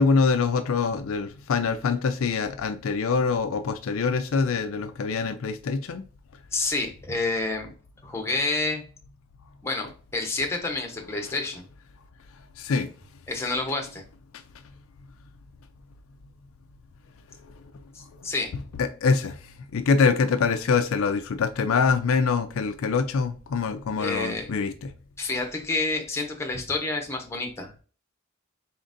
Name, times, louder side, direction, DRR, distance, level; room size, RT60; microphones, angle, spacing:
voice 1, 0.0-6.0 12.6-12.9 14.3-14.4 18.2-18.3 18.8-19.4 19.7-24.9, left 5 dB, 65° left, 0.4 m, -24 dB
voice 2, 6.5-7.7 8.0-8.8 9.6-11.6 13.3-14.0 17.9-18.5 24.0-24.5 25.2-27.8, left 3 dB, 10° left, 0.8 m, -29 dB
4.3 x 3.8 x 2.5 m
head